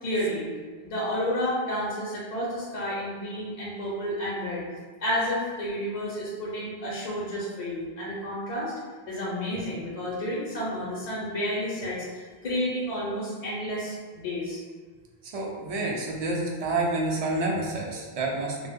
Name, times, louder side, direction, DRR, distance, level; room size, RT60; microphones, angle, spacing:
voice 1, 0.0-0.5 0.8-4.6 5.0-8.7 9.1-14.6, equal, 50° left, -6 dB, 0.5 m, -31 dB
voice 2, 15.2-18.7, right 2 dB, 55° right, -1 dB, 0.4 m, -28 dB
2.1 x 2.0 x 3.4 m, 1.5 s
omnidirectional pair, 1.1 m